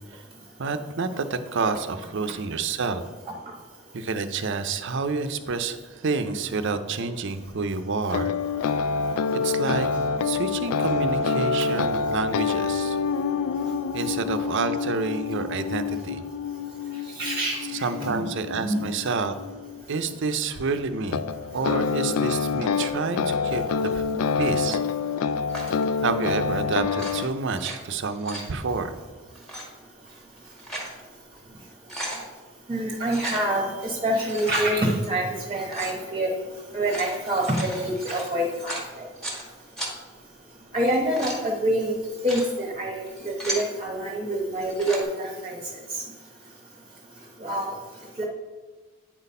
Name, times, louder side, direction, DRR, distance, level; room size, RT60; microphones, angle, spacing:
voice 1, 0.6-3.0 3.9-8.3 9.4-9.9 10.2-13.0 13.9-16.2 17.8-19.4 19.9-21.3 21.5-24.0 24.4-24.8 26.0-28.9, right 4 dB, 55° right, 9 dB, 0.5 m, -28 dB
sound 1, 8.1-20.0 21.1-27.3, left 5 dB, 85° left, 0.3 m, -27 dB
voice 2, 17.2-18.2 18.6-18.8 32.7-36.3 36.7-39.1 40.7-42.0 42.2-45.6 47.4-47.7 48.2-48.3, right 1 dB, 20° right, -1 dB, 0.9 m, -26 dB
sound 2, 25.5-25.9 26.9-27.8 28.1-28.5 29.4-29.6 30.3-30.9 31.4-31.5 31.7-32.2 33.1-33.5 34.1-34.7 35.7-36.0 36.7-39.4 39.8-39.9 40.8-41.4 42.0-42.5 43.1-43.7 44.6-45.0, right 1 dB, ahead, 1.3 m, -35 dB
8.9 x 4.1 x 5.4 m, 1.4 s
head